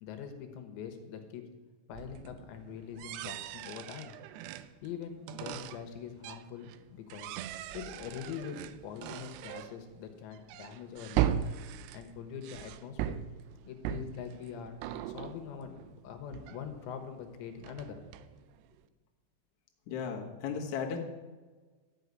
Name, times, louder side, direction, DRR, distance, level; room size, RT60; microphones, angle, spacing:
voice 1, 0.0-1.4 1.9-4.1 4.8-7.3 7.7-11.4 11.9-13.2 13.7-14.8 15.1-15.8 16.0-18.0, left 8 dB, 80° left, 6 dB, 3.3 m, -43 dB
sound 1, 1.9-6.8 7.1-17.2 17.5-18.8, right 11 dB, 80° right, 2.4 m, -39 dB
voice 2, 19.9-21.0, left 6 dB, 60° left, 0 dB, 2.2 m, -35 dB
13.5 x 6.6 x 9.5 m, 1.4 s
omnidirectional pair, 5.3 m